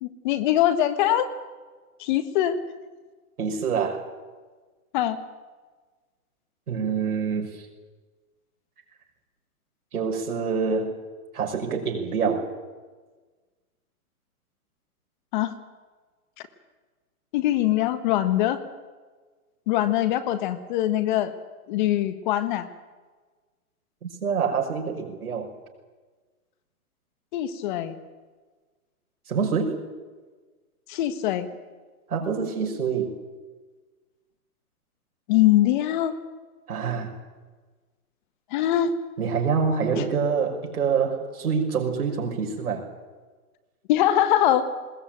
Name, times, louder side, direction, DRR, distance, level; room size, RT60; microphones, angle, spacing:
voice 1, 0.0-1.3 2.0-2.6 4.9-5.2 15.3-15.5 17.3-18.6 19.7-21.3 21.7-22.7 27.3-27.9 30.9-31.5 35.3-36.1 38.5-38.9 39.9-40.0 43.9-44.7, left 12 dB, 35° left, 11 dB, 1.4 m, -22 dB
voice 2, 3.4-4.0 6.7-7.7 9.9-11.0 11.3-12.5 24.0-25.5 29.3-29.8 32.1-33.1 36.7-37.1 39.2-42.9, right 6 dB, 80° right, 2 dB, 5.8 m, -26 dB
20.5 x 19.5 x 9.0 m, 1.3 s
hypercardioid pair, 155°, 44 cm